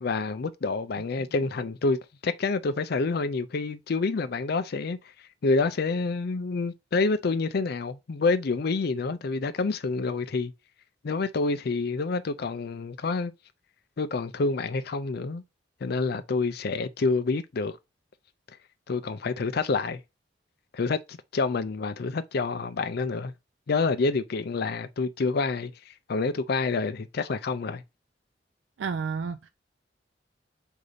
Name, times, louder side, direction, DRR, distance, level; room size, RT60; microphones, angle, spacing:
voice 1, 0.0-5.0 5.4-10.5 11.0-13.3 14.0-15.4 15.8-17.8 18.9-20.0 20.7-23.3 23.7-25.7 26.1-27.8, left 3 dB, 60° left, 0.5 m, -28 dB
voice 2, 28.8-29.5, right 5 dB, 75° right, 0.3 m, -31 dB
3.9 x 2.7 x 4.8 m
head